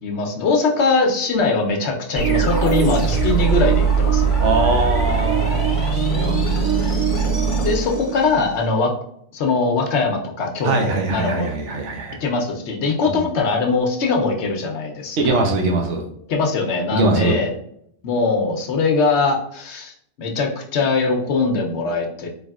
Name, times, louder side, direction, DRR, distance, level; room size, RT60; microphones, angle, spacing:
voice 1, 0.0-4.3 7.6-8.9 9.3-11.5 12.2-15.4 16.3-17.5 18.0-22.3, left 3 dB, 75° left, 3 dB, 1.0 m, -21 dB
sound 1, 2.2-8.6, right 5 dB, 30° left, 1.2 m, -20 dB
voice 2, 4.4-6.8 10.6-12.2 13.1-13.2 15.2-16.0 16.9-17.4, right 2 dB, 80° right, 2 dB, 1.1 m, -22 dB
4.0 x 3.4 x 2.3 m, 0.70 s
omnidirectional pair, 1.2 m